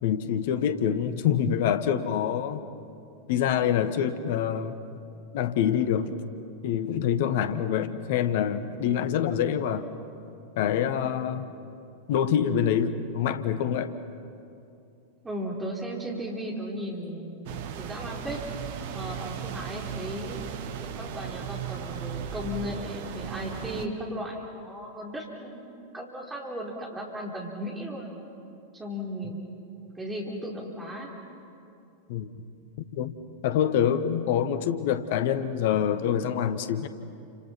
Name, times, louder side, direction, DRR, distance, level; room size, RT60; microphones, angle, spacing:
voice 1, 0.0-2.6 3.3-4.8 5.3-6.1 6.6-9.9 10.6-11.5 12.1-13.9 32.1-32.3 32.9-33.1 33.4-36.9, left 9 dB, 50° left, 11 dB, 1.2 m, -26 dB
voice 2, 15.2-18.4 18.9-20.5 20.8-28.1 28.7-29.4 29.9-31.1, equal, 10° right, -2 dB, 4.5 m, -36 dB
sound 1, 17.5-23.9, right 8 dB, 50° right, 1.4 m, -36 dB
29.5 x 27.5 x 5.9 m, 2.6 s
figure-of-eight pair, 90°, 0 cm